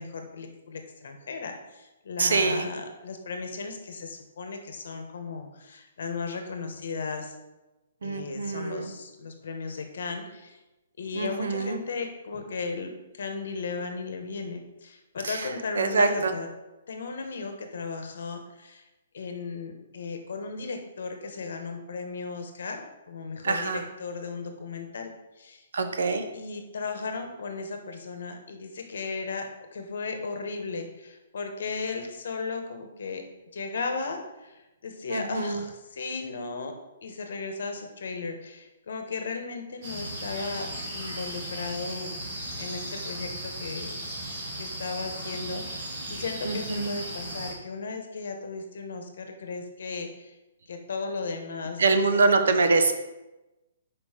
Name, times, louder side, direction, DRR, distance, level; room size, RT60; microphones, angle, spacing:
voice 1, 0.0-7.3 8.0-10.6 11.0-16.5 16.9-18.8 19.1-25.6 26.3-33.2 33.5-42.1 42.6-44.0 44.6-45.7 46.1-50.3 50.7-52.1, left 4 dB, 65° left, 5 dB, 1.1 m, -36 dB
voice 2, 2.2-2.7 8.0-8.9 11.1-11.8 15.2-15.5 15.8-16.4 23.4-23.8 25.7-26.2 35.1-35.6 46.4-46.9 51.8-52.9, right 3 dB, 80° right, 8 dB, 0.8 m, -24 dB
sound 1, 39.8-47.5, right 1 dB, 30° right, 2.1 m, -36 dB
5.4 x 4.9 x 5.0 m, 1.0 s
hypercardioid pair, 170°, 0 cm